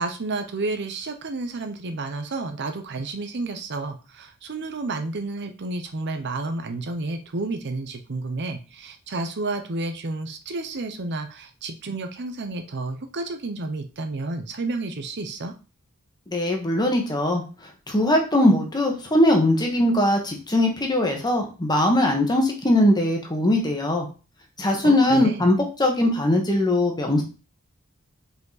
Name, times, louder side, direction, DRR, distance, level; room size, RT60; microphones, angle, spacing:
voice 1, 0.0-15.5 24.8-25.4, right 3 dB, 50° right, 7 dB, 0.7 m, -31 dB
voice 2, 16.3-17.4 17.9-24.1 24.6-27.2, left 1 dB, 20° left, 2 dB, 1.4 m, -20 dB
5.2 x 5.0 x 4.0 m, 0.33 s
head